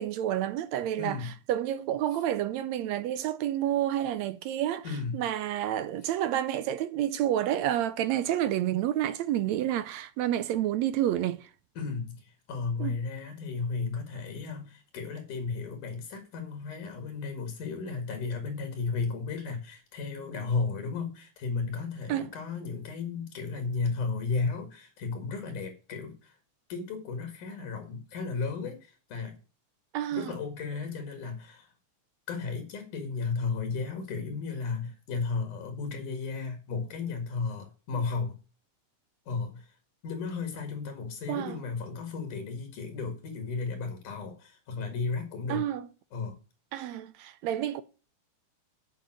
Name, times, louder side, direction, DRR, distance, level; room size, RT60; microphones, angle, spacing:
voice 1, 0.0-11.5 12.8-13.0 22.1-22.3 29.9-30.3 41.3-41.6 45.5-45.9 46.7-47.8, right 12 dB, 80° right, 1.7 m, -29 dB
voice 2, 1.0-1.3 4.8-5.3 11.8-26.3 26.7-29.3 30.1-31.7 32.3-38.4 39.3-39.7 40.0-45.7 46.1-46.4, left 4 dB, 80° left, 3.5 m, -34 dB
8.4 x 5.2 x 7.5 m
omnidirectional pair, 3.5 m